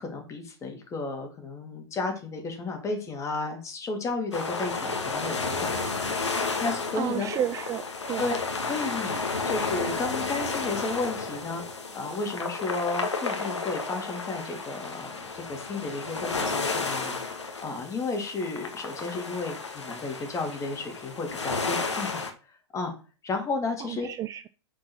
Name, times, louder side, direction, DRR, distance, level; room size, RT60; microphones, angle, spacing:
voice 1, 0.0-5.7 6.6-7.3 8.2-8.3 8.6-22.2 22.5-22.9 23.2-24.1, left 3 dB, 20° left, 3 dB, 2.5 m, -33 dB
sound 1, 4.3-22.3, left 4 dB, 90° left, 1.5 m, -32 dB
voice 2, 7.0-8.2 23.8-24.5, right 11 dB, 25° right, 12 dB, 0.4 m, -31 dB
6.5 x 4.6 x 6.1 m, 0.35 s
hypercardioid pair, 105°, 15 cm